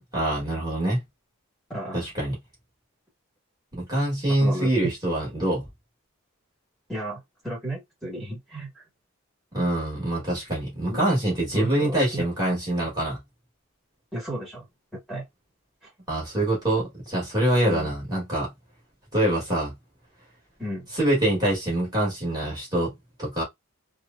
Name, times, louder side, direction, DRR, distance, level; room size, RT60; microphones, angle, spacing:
voice 1, 0.1-1.0 1.9-2.4 3.7-5.6 9.5-13.2 16.1-18.5 19.1-19.7 20.9-22.9 23.2-23.4, right 1 dB, 15° right, 1.3 m, -25 dB
voice 2, 1.7-2.0 4.4-4.7 6.9-8.8 10.9-11.0 11.5-12.3 14.1-14.6 14.9-15.2 15.8-15.9 17.6-17.9 20.6-20.9, right 1 dB, ahead, 1.3 m, -34 dB
3.0 x 2.0 x 2.4 m
head